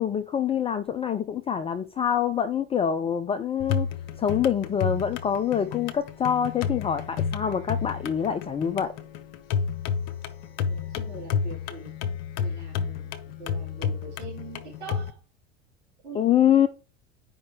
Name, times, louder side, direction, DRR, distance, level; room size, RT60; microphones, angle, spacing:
voice 1, 0.0-3.9 4.2-8.9 16.1-16.7, left 9 dB, 15° left, 0.5 m, -25 dB
sound 1, 3.6-15.1, left 7 dB, 55° left, 1.0 m, -31 dB
voice 2, 10.7-11.9 12.4-15.2 16.0-16.2, right 5 dB, 75° right, 3.4 m, -43 dB
9.2 x 5.3 x 3.5 m
figure-of-eight pair, 70°, 34 cm